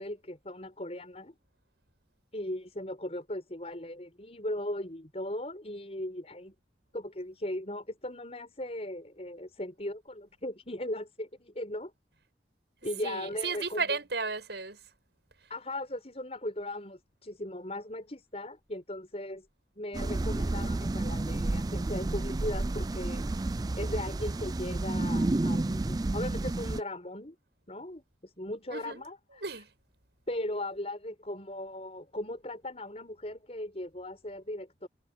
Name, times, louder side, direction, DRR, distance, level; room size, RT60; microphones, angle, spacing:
voice 1, 0.0-1.3 2.3-6.5 6.9-11.9 12.8-14.0 15.5-19.5 19.8-23.2 23.8-27.3 27.7-29.2 30.3-34.9, left 1 dB, 35° left, 5.9 m, -38 dB
voice 2, 12.8-14.8 28.7-29.0 29.4-29.7, right 4 dB, 75° right, 5.9 m, -34 dB
sound 1, 19.9-26.8, right 2 dB, 20° right, 0.4 m, -30 dB
head